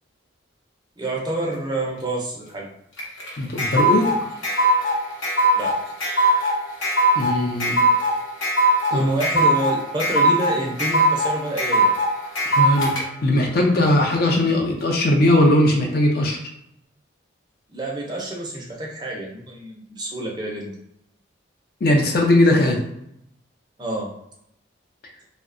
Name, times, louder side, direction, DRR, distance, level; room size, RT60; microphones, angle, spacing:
voice 1, 1.0-2.7 5.5-5.8 8.9-11.9 17.7-20.7 23.8-24.1, right 2 dB, 20° right, -2 dB, 0.5 m, -28 dB
sound 1, 3.0-13.0, right 1 dB, 80° left, 0.9 m, -20 dB
voice 2, 3.4-4.1 7.2-7.8 8.9-9.1 12.5-12.9 13.2-16.4 21.8-22.8, left 1 dB, 50° left, 1 dB, 0.4 m, -19 dB
2.6 x 2.1 x 2.5 m, 0.78 s
head